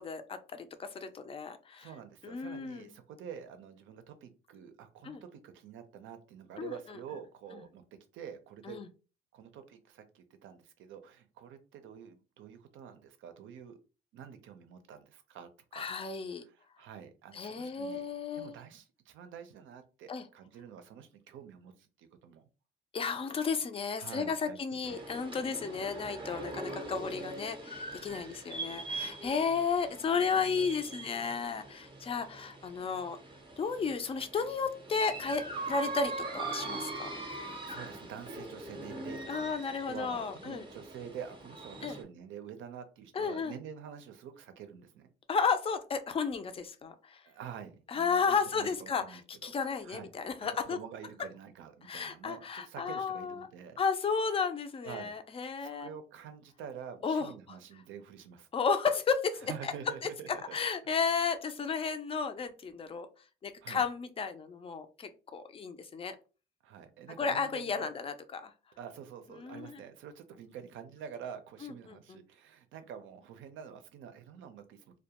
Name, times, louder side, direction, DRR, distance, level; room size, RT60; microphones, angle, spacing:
voice 1, 0.0-1.9 2.2-2.9 5.0-5.2 6.6-7.0 8.7-8.9 15.7-16.4 17.3-18.5 20.1-20.2 22.9-33.2 33.6-37.1 39.3-40.7 41.8-42.0 43.1-43.5 45.3-47.2 47.9-50.8 51.9-53.5 53.8-55.9 57.0-57.3 58.5-59.7 60.5-63.1 63.4-66.2 67.2-68.5 69.4-69.8 71.6-72.2, left 5 dB, 30° left, 9 dB, 0.4 m, -33 dB
voice 2, 1.8-7.8 8.1-8.8 9.3-13.8 14.1-15.9 16.4-18.1 18.4-22.5 24.0-25.0 28.1-28.3 37.3-39.6 39.8-45.1 47.3-49.6 49.8-50.1 50.7-53.8 54.8-55.1 55.6-58.5 59.4-60.6 63.6-63.8 66.6-67.9 68.8-74.9, right 8 dB, 80° right, 9 dB, 0.5 m, -47 dB
sound 1, 24.8-42.0, right 2 dB, 25° right, 0.6 m, -42 dB
2.3 x 2.1 x 2.8 m, 0.34 s
cardioid pair, 90°, 20 cm